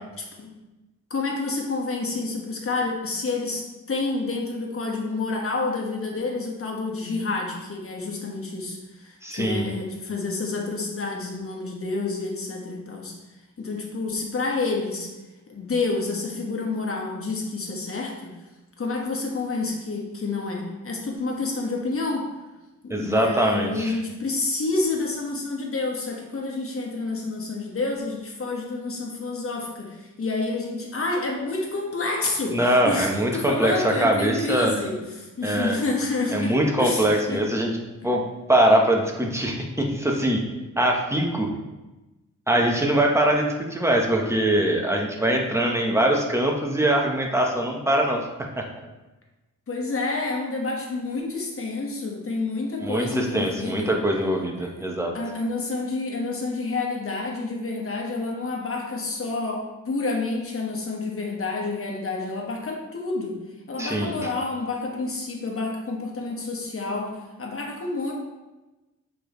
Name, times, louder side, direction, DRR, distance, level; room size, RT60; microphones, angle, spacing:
voice 1, 1.1-3.6 3.9-13.1 13.6-15.1 15.5-18.3 18.8-22.3 22.8-37.4 49.7-53.9 54.6-54.7 55.1-63.3 63.7-67.1 67.4-68.1, left 3 dB, 45° left, 0 dB, 1.4 m, -29 dB
voice 2, 9.2-9.6 22.9-24.0 32.5-34.7 35.4-35.8 36.3-37.7 38.0-38.2 38.5-40.4 40.8-41.5 42.5-48.2 48.6-48.7 52.8-55.1 63.8-64.1, right 1 dB, 10° right, 1 dB, 1.0 m, -22 dB
7.0 x 5.0 x 3.1 m, 1.1 s
wide cardioid pair, 105°, 32 cm